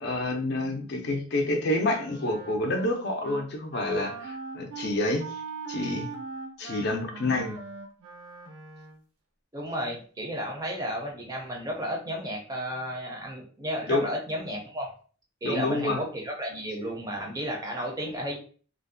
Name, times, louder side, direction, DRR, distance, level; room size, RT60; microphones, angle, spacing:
voice 1, 0.0-5.2 5.7-6.1 6.6-7.6 13.9-14.1 15.4-16.0, left 2 dB, 50° left, 3 dB, 0.5 m, -28 dB
Wind instrument woodwind instrument, 1.8-2.9 3.2-3.5 3.7-9.0, right 5 dB, 85° right, 0.6 m, -40 dB
voice 2, 9.5-14.9 15.4-18.4, equal, 15° right, 0 dB, 0.5 m, -33 dB
2.5 x 2.1 x 2.5 m, 0.41 s
head